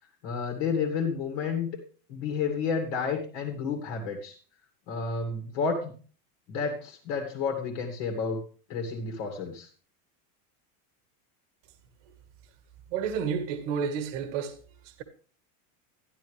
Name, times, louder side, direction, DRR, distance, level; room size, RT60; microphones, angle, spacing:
voice 1, 0.2-1.7 2.1-4.3 4.9-5.9 6.5-8.4 8.7-9.7, left 5 dB, 45° left, 2.3 m, -30 dB
voice 2, 12.9-14.6 14.8-15.0, right 6 dB, 55° right, 1.8 m, -30 dB
13.0 x 11.0 x 3.3 m
supercardioid pair, 170°, 44 cm